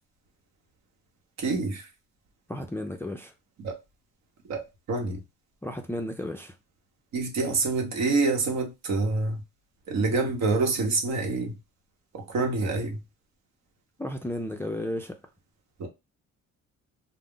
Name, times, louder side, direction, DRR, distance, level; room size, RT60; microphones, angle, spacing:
voice 1, 1.4-1.8 3.6-3.7 4.5-4.6 4.9-5.2 7.1-9.4 9.9-11.5 12.1-13.0 15.8-15.9, right 3 dB, 65° right, 0.9 m, -26 dB
voice 2, 2.5-3.3 5.6-6.6 14.0-15.1, left 1 dB, 10° left, 0.3 m, -33 dB
2.3 x 2.0 x 3.6 m
cardioid pair, 90°, 30 cm